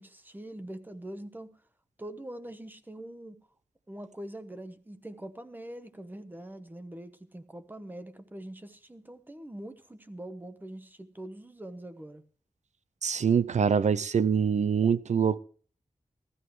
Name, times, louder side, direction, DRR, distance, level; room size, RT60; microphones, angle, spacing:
voice 1, 0.0-1.5 2.0-3.4 3.9-12.2, right 1 dB, 15° right, 1.0 m, -43 dB
voice 2, 13.0-15.4, right 7 dB, 65° right, 0.4 m, -24 dB
15.5 x 13.5 x 3.1 m
wide cardioid pair, 110°, 13 cm